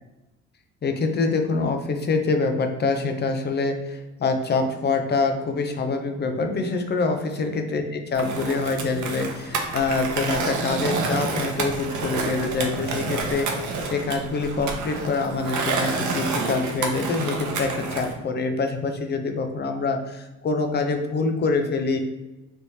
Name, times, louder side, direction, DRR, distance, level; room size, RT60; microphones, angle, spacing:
voice 1, 0.8-22.0, left 3 dB, 35° left, 5 dB, 0.5 m, -25 dB
Skateboard, 8.1-18.1, right 4 dB, 75° right, 0.7 m, -29 dB
3.4 x 3.0 x 2.7 m, 1.1 s
cardioid pair, 90°, 30 cm